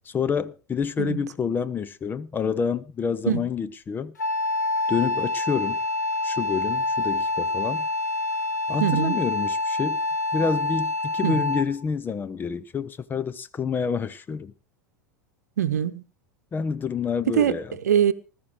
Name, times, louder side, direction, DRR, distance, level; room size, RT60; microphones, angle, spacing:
voice 1, 0.1-4.1 4.9-5.8 6.2-7.9 8.7-10.0 10.3-14.5 16.5-17.8, left 6 dB, 20° left, 0.7 m, -28 dB
Wind instrument woodwind instrument, 4.2-11.8, left 2 dB, 80° left, 1.0 m, -26 dB
voice 2, 8.8-9.3 11.2-11.4 15.6-16.0 17.3-17.6 17.8-18.1, right 10 dB, 70° right, 0.9 m, -22 dB
20.0 x 13.0 x 3.3 m
figure-of-eight pair, 85°, 9 cm